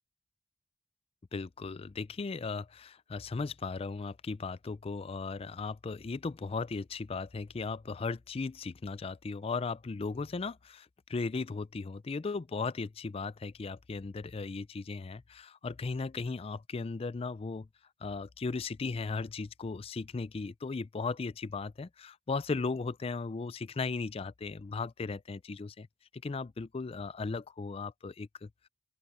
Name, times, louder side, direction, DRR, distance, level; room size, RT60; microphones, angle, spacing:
voice 1, 1.3-17.7 18.0-25.9 26.2-28.5, left 4 dB, 30° left, 0.4 m, -37 dB
open air
head